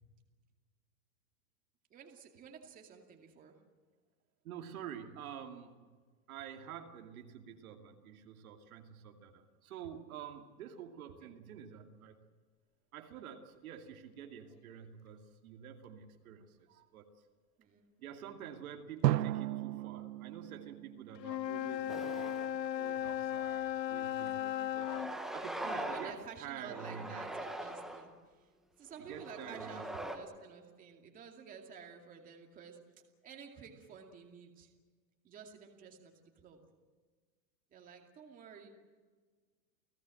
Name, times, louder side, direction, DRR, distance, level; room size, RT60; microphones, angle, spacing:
voice 1, 1.9-3.6 11.2-11.3 16.2-16.3 17.6-18.1 25.6-28.5 28.8-32.8 33.2-34.7 35.2-36.6 37.7-38.7, right 6 dB, 15° right, 2 dB, 2.4 m, -52 dB
voice 2, 4.4-5.9 6.3-12.2 12.9-17.1 18.0-22.3 22.6-24.9 25.3-27.3 29.1-30.0, right 8 dB, 55° right, 4 dB, 2.6 m, -48 dB
Drum, 19.0-21.9, right 14 dB, 85° right, 0.9 m, -35 dB
Wind instrument woodwind instrument, 21.2-25.1, left 11 dB, 80° left, 1.2 m, -36 dB
sound 1, 21.9-22.6 23.0-23.1 24.2-24.3 24.8-26.2 26.6-28.1 28.9-30.2, right 1 dB, ahead, 0.8 m, -42 dB
30.0 x 17.0 x 7.8 m, 1.5 s
supercardioid pair, 165°, 49 cm